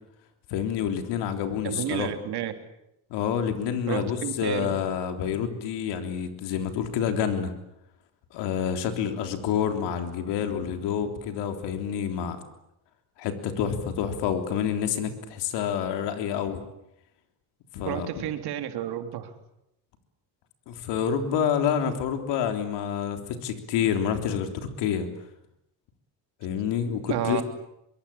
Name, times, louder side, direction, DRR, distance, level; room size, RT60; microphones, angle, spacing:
voice 1, 0.5-2.1 3.1-7.5 8.3-12.4 13.2-16.6 17.7-18.1 20.7-25.1 26.4-27.4, left 8 dB, 90° left, 6 dB, 3.6 m, -28 dB
voice 2, 1.6-2.5 3.9-4.8 17.8-19.3 27.1-27.4, right 11 dB, 70° right, 7 dB, 3.4 m, -31 dB
24.5 x 24.0 x 8.8 m, 0.83 s
cardioid pair, 120°, 40 cm